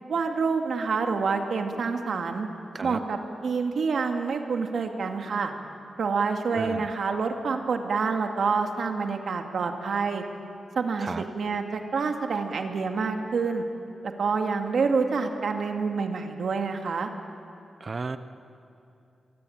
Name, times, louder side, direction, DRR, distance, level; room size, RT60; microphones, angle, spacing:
voice 1, 0.1-2.5 2.8-5.5 6.0-10.2 10.8-13.6 14.0-17.1, right 4 dB, 60° right, 4 dB, 2.3 m, -27 dB
voice 2, 6.5-6.9 11.0-11.2 17.8-18.2, right 4 dB, 35° right, 11 dB, 0.9 m, -33 dB
27.5 x 23.5 x 8.9 m, 2.6 s
wide cardioid pair, 160°, 0 cm